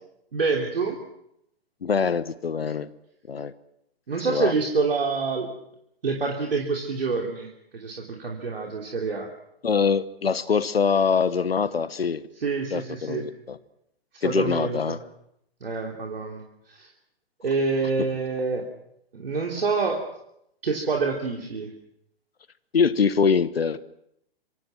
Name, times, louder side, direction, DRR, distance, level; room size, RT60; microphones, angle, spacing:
voice 1, 0.3-1.0 4.1-5.5 6.0-9.3 12.3-13.3 14.2-15.0 15.6-16.9 17.4-18.7 19.1-20.0 20.6-21.7, right 4 dB, 65° right, 1 dB, 3.4 m, -27 dB
voice 2, 1.8-2.9 3.3-3.5 4.3-4.5 9.6-12.2 12.7-13.6 14.2-15.0 22.7-23.8, left 6 dB, 70° left, 16 dB, 1.2 m, -23 dB
26.0 x 25.5 x 6.1 m, 0.78 s
figure-of-eight pair, 115°, 31 cm